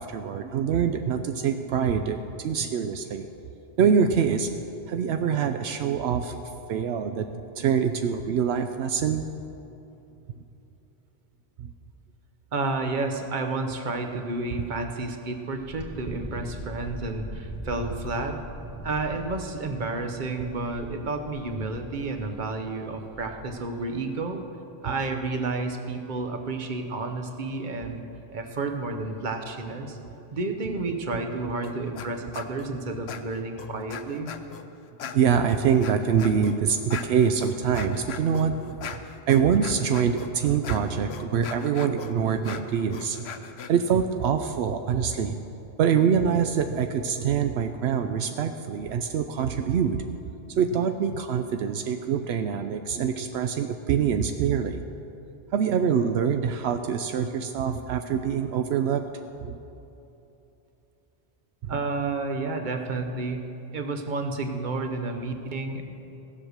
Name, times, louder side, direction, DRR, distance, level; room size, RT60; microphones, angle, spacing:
voice 1, 0.0-3.3 3.8-4.5 4.9-9.2 10.3-10.4 11.6-11.7 14.6-14.7 16.1-16.2 20.4-20.5 24.9-25.0 27.9-28.0 31.1-31.2 35.1-39.0 39.3-43.3 43.7-45.4 45.8-50.0 50.5-54.8 55.5-59.6 61.6-61.8, right 7 dB, 80° right, 7 dB, 0.8 m, -25 dB
voice 2, 12.5-18.4 18.8-24.4 24.8-28.0 28.3-30.0 30.3-34.3 61.7-63.4 63.7-65.8, right 3 dB, 50° right, 5 dB, 1.1 m, -31 dB
Wind, 15.6-23.7, right 1 dB, 15° right, 1.5 m, -41 dB
sound 1, 31.6-32.1 32.3-32.7 33.1-34.6 35.0-43.7, left 7 dB, 75° left, 0.9 m, -40 dB
16.0 x 7.5 x 6.5 m, 3.0 s
omnidirectional pair, 1.1 m